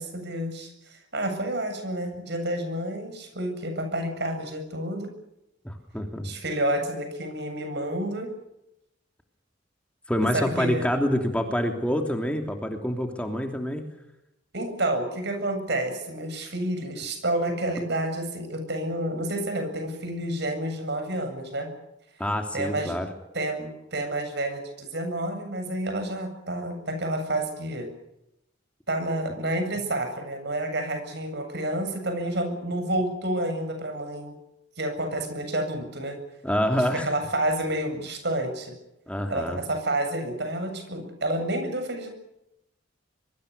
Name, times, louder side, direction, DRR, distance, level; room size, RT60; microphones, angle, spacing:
voice 1, 0.0-5.1 6.2-8.3 10.3-10.9 14.5-21.7 22.5-23.0 23.3-27.9 28.9-34.3 34.8-36.2 36.9-38.8 39.3-42.1, right 1 dB, 60° right, 7 dB, 7.8 m, -29 dB
voice 2, 5.6-6.3 10.1-13.8 22.2-23.1 36.4-37.1 39.1-39.6, equal, 5° left, 4 dB, 3.0 m, -26 dB
25.0 x 23.5 x 6.9 m, 0.85 s
head